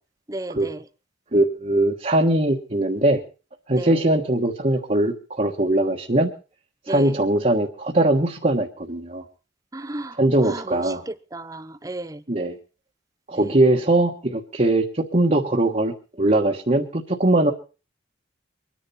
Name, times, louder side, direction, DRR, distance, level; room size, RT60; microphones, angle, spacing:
voice 1, 0.3-0.8 3.7-4.0 6.9-7.2 9.7-12.2 13.3-13.7, right 2 dB, 20° right, 0.7 m, -34 dB
voice 2, 1.3-3.2 3.7-6.3 6.9-9.2 10.2-11.0 12.3-12.6 13.3-17.5, right 1 dB, 40° right, 1.4 m, -21 dB
24.5 x 10.5 x 4.2 m
head